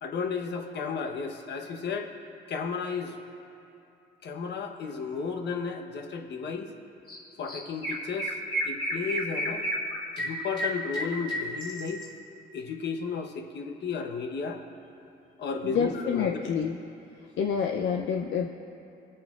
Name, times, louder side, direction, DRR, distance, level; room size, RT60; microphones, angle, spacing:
voice 1, 0.0-2.1 2.5-3.2 4.2-6.7 7.4-8.4 8.6-9.7 10.2-12.0 12.5-14.6 15.4-16.4, left 5 dB, 60° left, 3 dB, 1.0 m, -33 dB
Chirp tweet, 7.1-7.2 7.5-12.1, equal, 25° left, 2.5 m, -31 dB
voice 2, 15.6-16.8 17.4-18.5, left 7 dB, 75° left, 2 dB, 0.6 m, -28 dB
23.0 x 8.7 x 2.4 m, 2.7 s
cardioid pair, 90°, 20 cm